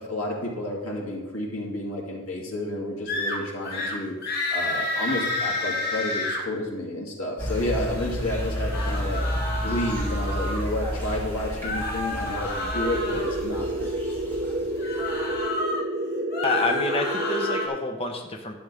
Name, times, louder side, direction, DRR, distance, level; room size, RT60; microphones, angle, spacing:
voice 1, 0.0-4.1 4.5-9.2 9.6-13.9, left 1 dB, 90° left, -2 dB, 2.4 m, -30 dB
sound 1, 3.1-3.4 3.6-3.9 4.2-6.4 8.5-10.7 11.6-13.4 14.8-15.8 16.2-17.7, left 2 dB, 50° left, 1.8 m, -30 dB
sound 2, 7.4-15.5, equal, 10° left, 3.0 m, -32 dB
sound 3, 12.7-17.7, right 1 dB, 35° right, 0.5 m, -29 dB
voice 2, 16.4-18.6, left 2 dB, 30° left, 3 dB, 0.8 m, -28 dB
12.0 x 7.7 x 3.4 m, 1.1 s
head